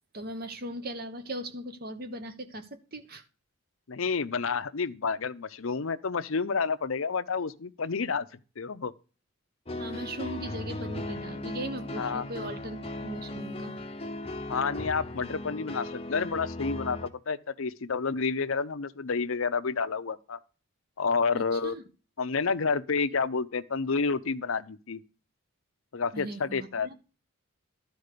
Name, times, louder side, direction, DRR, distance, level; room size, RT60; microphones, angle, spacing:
voice 1, 0.1-3.2 9.8-13.7 21.3-21.8 26.1-26.9, right 1 dB, 45° right, 1.2 m, -39 dB
voice 2, 3.9-8.3 8.6-8.9 12.0-12.2 14.5-20.4 21.0-21.7 22.2-25.0 25.9-26.9, left 5 dB, 70° left, 0.7 m, -29 dB
sound 1, 9.7-17.1, left 1 dB, 25° left, 0.8 m, -37 dB
12.0 x 4.6 x 6.7 m
head